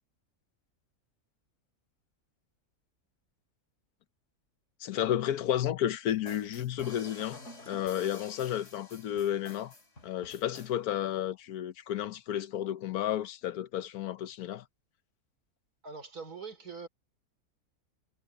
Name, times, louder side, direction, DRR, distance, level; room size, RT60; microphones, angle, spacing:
voice 1, 4.8-9.7 10.0-14.6, left 11 dB, 80° left, 1.3 m, -32 dB
sound 1, 6.1-10.7, left 2 dB, 50° left, 4.0 m, -50 dB
sound 2, 7.7-10.1, left 2 dB, 10° left, 6.8 m, -65 dB
voice 2, 15.8-16.9, right 5 dB, 75° right, 4.4 m, -43 dB
omnidirectional pair, 1.6 m